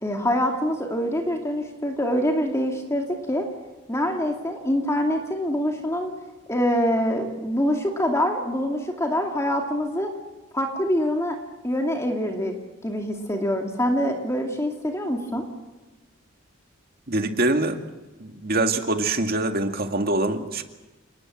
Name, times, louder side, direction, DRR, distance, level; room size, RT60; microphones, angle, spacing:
voice 1, 0.0-3.5 3.9-6.1 6.5-10.1 10.5-11.4 11.6-12.5 12.8-15.5, equal, 15° left, 2 dB, 2.5 m, -25 dB
voice 2, 17.1-17.8 18.2-20.6, right 2 dB, 50° right, 6 dB, 2.1 m, -24 dB
29.0 x 19.5 x 7.7 m, 1.1 s
head